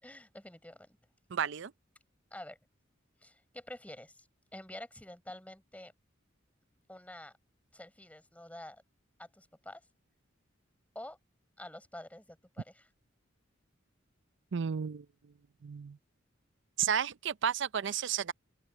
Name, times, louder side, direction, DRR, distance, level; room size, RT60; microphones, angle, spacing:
voice 1, 0.0-1.0 2.3-2.6 3.2-4.3 4.5-5.9 6.9-7.3 7.7-8.8 9.2-9.8 10.9-11.2 11.6-12.9, left 1 dB, 10° left, 5.0 m, -48 dB
voice 2, 1.3-1.7 14.5-15.1 15.6-16.0 16.8-18.3, right 8 dB, 65° right, 0.5 m, -32 dB
open air
head